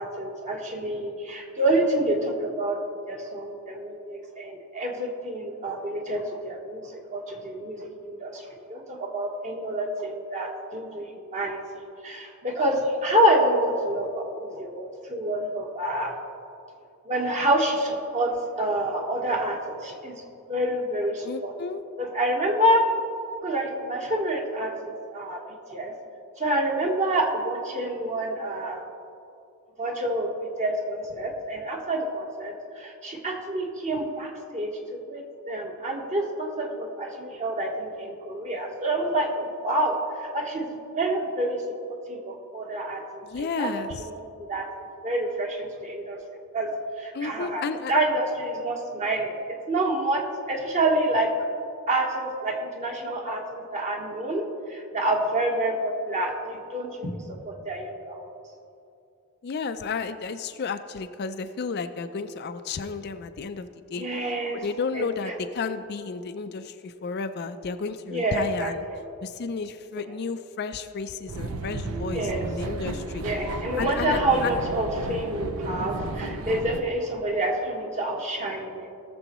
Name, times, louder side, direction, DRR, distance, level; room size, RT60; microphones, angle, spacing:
voice 1, 0.0-8.4 8.7-11.6 12.0-16.1 17.1-20.1 20.5-21.5 22.0-22.8 23.4-25.4 25.7-25.9 26.4-28.8 29.8-30.3 30.6-41.6 42.1-43.7 44.0-44.7 45.0-46.2 46.5-46.7 47.0-51.3 51.9-54.4 54.7-57.2 57.4-58.3 64.0-64.6 64.9-65.3 68.1-69.0 70.0-70.1 72.1-72.5 73.2-78.9, right 1 dB, 35° right, 1 dB, 1.2 m, -27 dB
voice 2, 21.3-21.8 43.2-44.0 47.1-47.9 59.4-64.1 64.6-68.8 69.2-73.3 73.8-74.5, left 5 dB, 50° left, 9 dB, 0.4 m, -32 dB
sound 1, 71.3-76.8, right 2 dB, 80° right, 0.7 m, -33 dB
18.5 x 6.9 x 3.0 m, 2.6 s
head